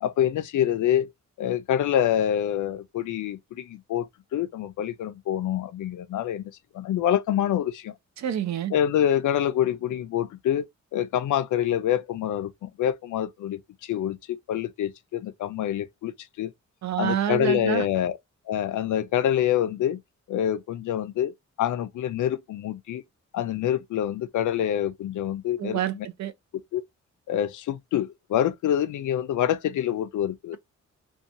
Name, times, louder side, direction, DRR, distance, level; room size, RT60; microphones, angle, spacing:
voice 1, 0.0-1.1 1.4-7.9 8.7-10.7 10.9-16.5 17.0-18.2 18.5-20.0 20.3-21.3 21.6-23.0 23.3-26.1 26.7-26.8 27.3-30.6, left 10 dB, 85° left, 0.5 m, -26 dB
voice 2, 8.2-8.7 16.8-17.8 25.6-26.3, right 10 dB, 70° right, 0.5 m, -27 dB
2.7 x 2.2 x 2.5 m
wide cardioid pair, 180°, 30 cm